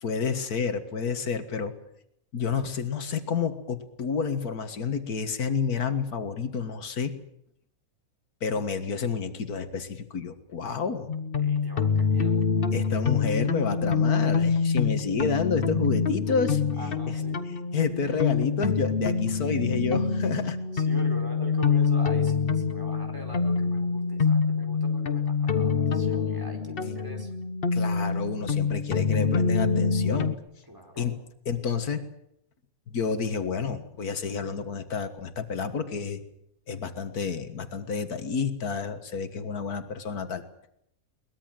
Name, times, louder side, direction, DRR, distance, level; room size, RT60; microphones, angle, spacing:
voice 1, 0.0-1.7 2.3-7.2 8.4-11.1 12.7-16.9 17.5-20.6 26.9-27.0 27.7-30.4 31.0-31.1 31.5-32.0 32.9-36.2 36.7-40.4, left 5 dB, 85° left, 9 dB, 2.1 m, -30 dB
sound 1, 11.1-30.3, left 5 dB, 40° left, 1.2 m, -26 dB
voice 2, 11.4-12.4 16.8-17.5 20.7-27.3 30.7-31.1, equal, 15° right, 3 dB, 4.6 m, -42 dB
22.5 x 20.0 x 7.7 m, 0.75 s
omnidirectional pair, 1.5 m